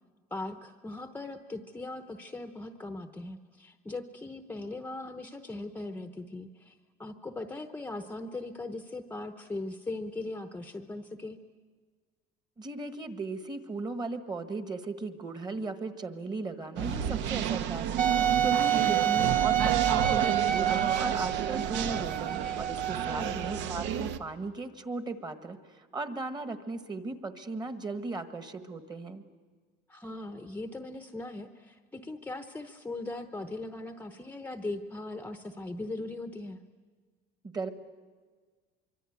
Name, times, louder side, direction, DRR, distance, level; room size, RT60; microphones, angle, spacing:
voice 1, 0.3-11.4 18.8-19.0 23.0-23.4 29.9-36.6, left 2 dB, 10° left, 8 dB, 0.9 m, -39 dB
voice 2, 12.6-29.2 37.5-37.7, right 3 dB, 20° right, 9 dB, 1.5 m, -37 dB
sound 1, 16.8-24.2, right 9 dB, 70° right, 1.2 m, -31 dB
Wind instrument woodwind instrument, 18.0-23.6, right 10 dB, 45° right, 1.2 m, -28 dB
24.5 x 24.0 x 9.5 m, 1.5 s
cardioid pair, 150°, 19 cm